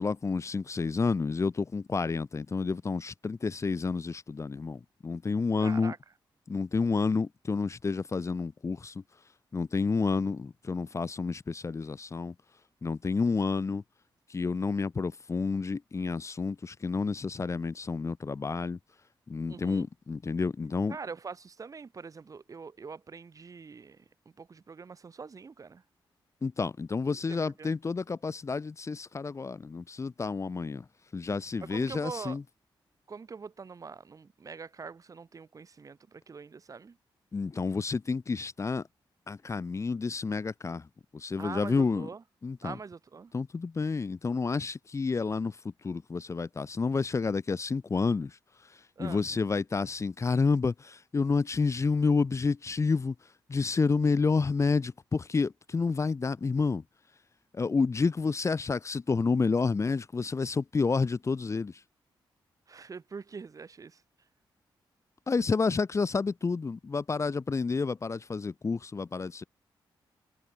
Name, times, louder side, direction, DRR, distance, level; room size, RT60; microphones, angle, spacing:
voice 1, 0.0-5.9 6.5-9.0 9.5-12.3 12.8-13.8 14.3-18.8 19.3-21.0 26.4-30.9 31.1-32.4 37.3-38.9 39.3-40.9 41.1-42.1 42.4-42.8 43.3-48.4 48.6-53.2 53.5-56.8 57.5-61.8 65.3-69.4, left 4 dB, 35° left, 1.8 m, -29 dB
voice 2, 5.6-6.0 19.5-19.9 20.9-24.1 24.4-25.8 27.3-27.8 31.7-32.4 33.1-37.0 41.4-42.2 42.6-43.3 49.0-49.3 62.7-64.0, right 5 dB, 40° right, 3.7 m, -44 dB
cardioid pair, 105°, 9 cm